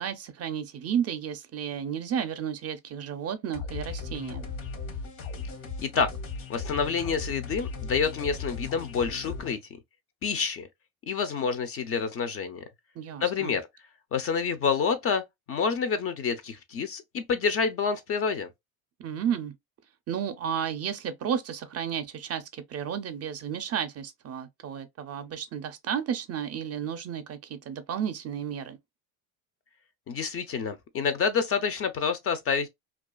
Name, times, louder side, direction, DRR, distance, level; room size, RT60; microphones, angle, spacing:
voice 1, 0.0-4.5 13.0-13.6 19.0-19.5 20.1-28.8, right 8 dB, 35° right, 0.4 m, -32 dB
sound 1, 3.5-9.5, left 4 dB, 80° left, 1.0 m, -37 dB
voice 2, 5.8-6.1 6.5-9.6 10.2-10.7 11.1-12.6 13.2-13.7 14.1-15.2 15.5-18.5 30.1-32.7, left 6 dB, 35° left, 0.4 m, -28 dB
2.3 x 2.3 x 2.2 m
supercardioid pair, 90°, 43 cm